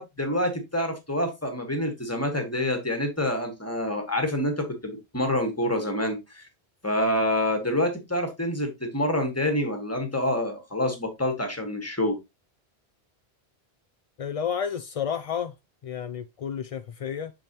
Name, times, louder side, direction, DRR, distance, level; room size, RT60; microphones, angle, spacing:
voice 1, 0.0-6.5 6.8-12.2, left 1 dB, 15° left, 1.6 m, -27 dB
voice 2, 14.2-15.6 15.8-17.3, left 8 dB, 55° left, 0.4 m, -31 dB
6.3 x 6.2 x 3.0 m
omnidirectional pair, 1.1 m